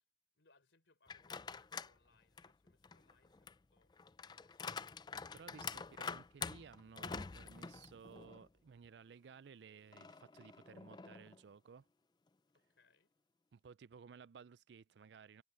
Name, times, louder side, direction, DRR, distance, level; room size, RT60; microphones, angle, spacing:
voice 1, 0.3-3.9 4.4-5.0 5.3-6.0 12.5-13.1, left 3 dB, 90° left, 3.7 m, -74 dB
sound 1, 1.1-2.0 2.4-8.5 8.8-8.9 9.9-11.4, left 5 dB, 25° left, 0.3 m, -47 dB
voice 2, 5.3-11.9 13.5-15.4, right 6 dB, 70° right, 0.4 m, -57 dB
head